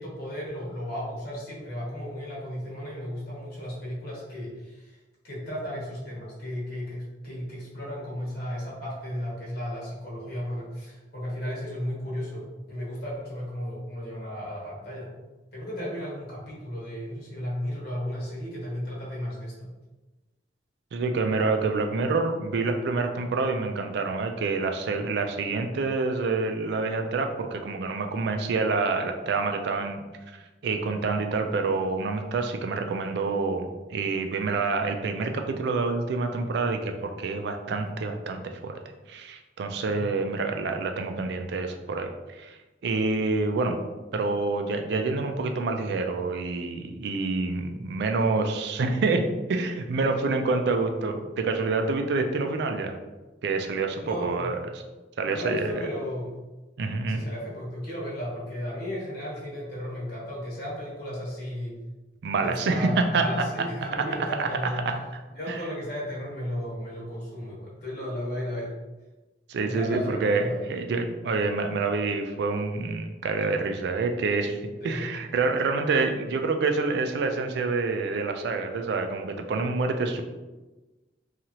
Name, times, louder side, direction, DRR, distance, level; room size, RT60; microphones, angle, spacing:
voice 1, 0.0-5.0 5.2-15.1 15.5-19.7 39.8-40.1 54.0-54.5 55.3-56.3 57.1-61.8 62.4-64.8 65.3-68.7 69.6-70.7 74.8-75.1, equal, 60° left, -5 dB, 1.0 m, -34 dB
voice 2, 20.9-30.4 30.6-38.7 39.1-42.6 42.8-43.8 44.1-53.0 53.4-54.6 55.2-55.8 56.8-57.2 62.2-63.2 64.0-65.0 65.5-65.6 69.5-74.6 74.8-80.2, right 3 dB, 65° right, 5 dB, 0.3 m, -27 dB
2.9 x 2.4 x 2.8 m, 1.1 s
head